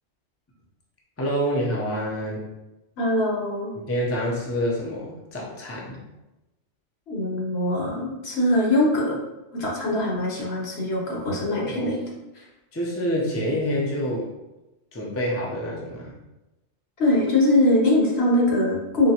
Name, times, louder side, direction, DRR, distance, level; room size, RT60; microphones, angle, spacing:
voice 1, 1.2-2.5 3.8-6.0 11.5-11.9 12.7-14.3 14.9-16.1, equal, 20° left, -3 dB, 0.4 m, -27 dB
voice 2, 3.0-3.7 7.1-9.1 9.5-12.0 17.0-19.1, left 1 dB, 65° left, -3 dB, 1.2 m, -22 dB
3.9 x 2.9 x 2.8 m, 0.99 s
omnidirectional pair, 1.2 m